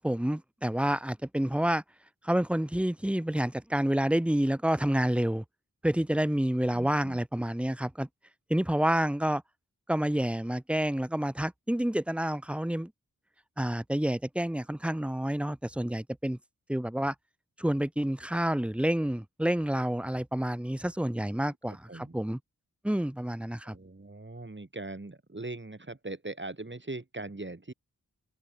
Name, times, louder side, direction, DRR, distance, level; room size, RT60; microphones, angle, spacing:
voice 1, 0.0-1.8 2.2-5.4 5.8-8.1 8.5-9.4 9.9-12.9 13.6-16.4 16.7-17.1 17.6-22.4 22.8-23.8, right 1 dB, 5° right, 0.5 m, -28 dB
voice 2, 21.7-22.2 23.6-27.7, right 2 dB, 35° right, 3.3 m, -41 dB
open air
cardioid pair, 45°, 34 cm